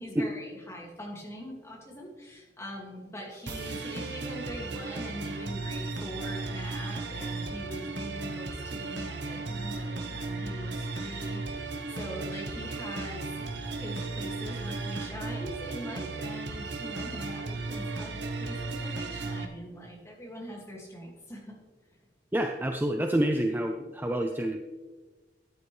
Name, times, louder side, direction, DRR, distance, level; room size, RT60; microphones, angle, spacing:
voice 1, 0.0-21.6, equal, 15° left, -1 dB, 2.2 m, -42 dB
sound 1, 3.5-19.4, right 3 dB, 70° right, 1.1 m, -35 dB
voice 2, 22.3-24.6, right 1 dB, 10° right, 4 dB, 0.4 m, -28 dB
13.5 x 9.6 x 3.3 m, 1.3 s
head